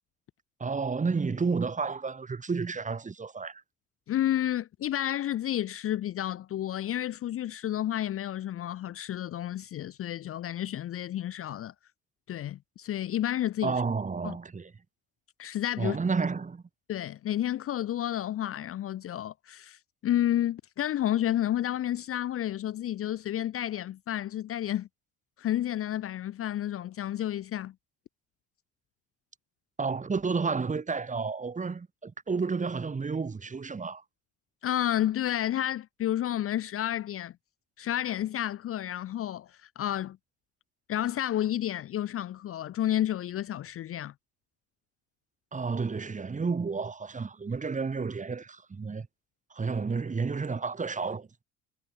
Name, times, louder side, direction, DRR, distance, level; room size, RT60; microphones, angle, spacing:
voice 1, 0.6-3.6 13.6-14.7 15.8-16.6 29.8-34.0 45.5-49.1 49.5-51.3, right 4 dB, 25° right, 1.9 m, -31 dB
voice 2, 4.1-11.7 12.3-13.7 14.2-14.4 15.4-16.0 16.9-24.9 25.4-27.7 34.6-37.3 37.8-40.2 40.9-44.1, left 12 dB, 45° left, 0.6 m, -31 dB
supercardioid pair, 85°, 32 cm